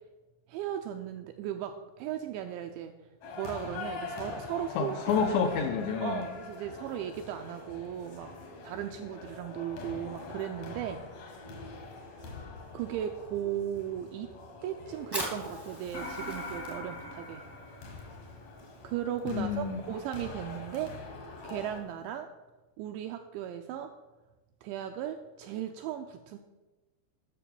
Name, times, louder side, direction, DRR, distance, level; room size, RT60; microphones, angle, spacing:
voice 1, 0.5-2.9 3.4-4.9 6.0-8.3 8.6-11.0 12.1-12.4 12.7-14.3 14.6-17.5 18.8-20.9 21.4-22.3 22.8-23.9 24.6-26.4, right 10 dB, 85° right, 6 dB, 2.6 m, -36 dB
sound 1, 3.2-21.8, left 3 dB, 65° left, 1.7 m, -44 dB
voice 2, 4.8-6.3 19.3-19.8, left 6 dB, 85° left, 4 dB, 2.5 m, -29 dB
Fire, 15.0-22.2, right 1 dB, 30° right, 0.4 m, -45 dB
sound 2, 15.9-18.6, left 2 dB, 50° left, 1.0 m, -42 dB
9.9 x 6.7 x 7.0 m, 1.1 s
omnidirectional pair, 5.7 m